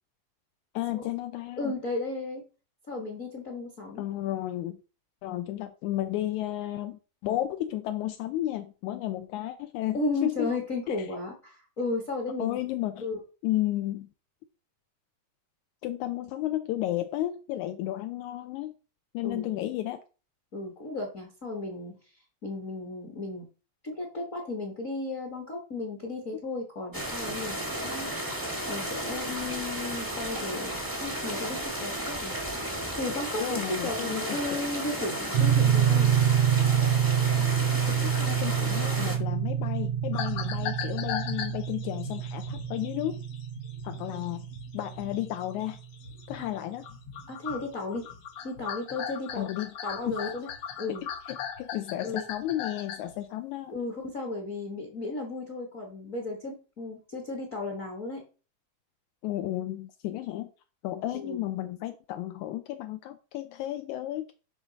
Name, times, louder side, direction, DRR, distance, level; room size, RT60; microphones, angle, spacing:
voice 1, 0.8-1.7 4.0-4.8 5.2-10.5 10.9-11.1 12.4-13.1 13.4-14.1 15.8-18.7 19.1-20.0 33.4-34.6 37.4-37.5 37.9-43.2 43.8-44.5 44.7-45.8 46.3-46.8 49.4-49.7 50.1-50.2 50.9-51.0 51.3-53.7 59.2-60.5 60.8-64.3, left 14 dB, 80° left, 8 dB, 2.0 m, -33 dB
voice 2, 1.6-2.4 2.9-4.0 9.9-12.6 13.0-13.2 19.2-19.6 20.5-21.9 22.4-23.4 23.9-28.1 28.7-32.3 33.0-36.2 46.4-46.5 47.3-48.1 48.4-49.5 49.8-50.5 50.8-51.0 52.0-52.3 53.7-58.2 61.1-61.4, left 2 dB, 40° left, 1 dB, 1.1 m, -34 dB
sound 1, 26.9-39.2, right 1 dB, 30° right, 0.3 m, -33 dB
sound 2, 35.3-45.5, right 8 dB, 75° right, 1.6 m, -27 dB
sound 3, 40.1-46.6 46.8-53.2, left 8 dB, 65° left, 1.5 m, -38 dB
11.5 x 3.9 x 4.0 m, 0.34 s
omnidirectional pair, 3.5 m